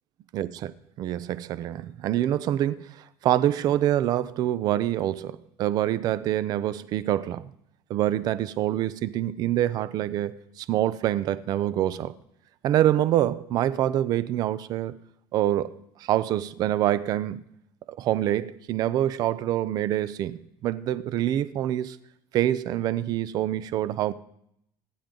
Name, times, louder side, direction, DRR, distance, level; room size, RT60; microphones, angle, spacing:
voice 1, 0.3-0.7 1.0-2.9 3.2-7.4 7.9-12.1 12.6-14.9 15.3-15.7 16.0-17.5 18.0-22.0 22.3-24.1, right 12 dB, 40° right, 0.6 m, -26 dB
24.5 x 10.5 x 3.9 m
cardioid pair, 170°, 10 cm